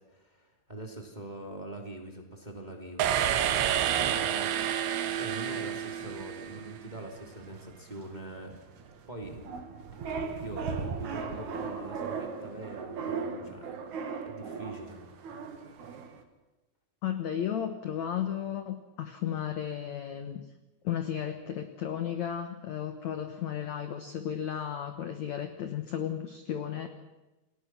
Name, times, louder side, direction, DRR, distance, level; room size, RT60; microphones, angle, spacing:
voice 1, 0.1-8.6 9.1-9.5 10.0-13.9 14.2-15.1, right 1 dB, 10° right, 2 dB, 2.3 m, -43 dB
sound 1, 3.0-6.8, right 10 dB, 90° right, 3.5 m, -29 dB
sound 2, 4.0-16.2, right 5 dB, 55° right, 2.7 m, -39 dB
voice 2, 17.0-20.4 20.8-26.9, left 9 dB, 65° left, 7 dB, 1.8 m, -34 dB
29.0 x 20.0 x 6.1 m, 1.1 s
omnidirectional pair, 4.9 m